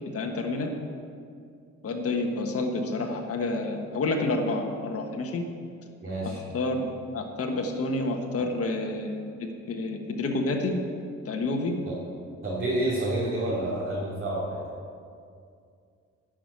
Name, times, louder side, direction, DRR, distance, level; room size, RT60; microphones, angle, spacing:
voice 1, 0.1-0.7 1.8-5.5 6.2-10.8 11.2-11.8, left 2 dB, 50° left, 2 dB, 1.4 m, -29 dB
voice 2, 6.0-6.4 11.8-11.9 12.4-14.7, right 1 dB, 40° right, -8 dB, 3.0 m, -29 dB
11.5 x 6.1 x 8.4 m, 2.3 s
cardioid pair, 90°, 30 cm